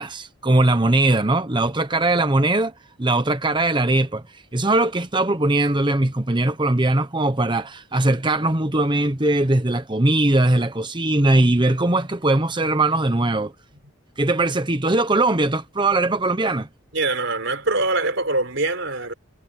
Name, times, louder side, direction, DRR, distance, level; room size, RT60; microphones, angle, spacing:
voice 1, 0.0-2.7 3.0-4.2 4.5-13.5 14.2-16.7, right 2 dB, 25° right, 1.1 m, -20 dB
voice 2, 16.9-19.1, right 2 dB, 65° right, 4.8 m, -23 dB
head